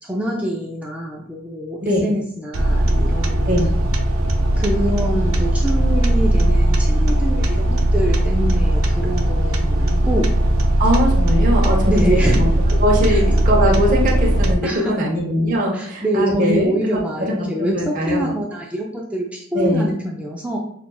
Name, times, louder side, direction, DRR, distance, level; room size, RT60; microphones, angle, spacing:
voice 1, 0.0-3.5 4.6-10.3 11.8-12.4 13.1-13.2 14.6-15.0 15.7-20.6, equal, 5° right, -3 dB, 0.3 m, -25 dB
sound 1, 2.5-14.5, right 1 dB, 75° right, 0.5 m, -18 dB
voice 2, 10.8-12.5 12.8-18.3 19.5-19.9, equal, 40° right, -2 dB, 0.8 m, -21 dB
5.7 x 2.3 x 2.2 m, 0.66 s
head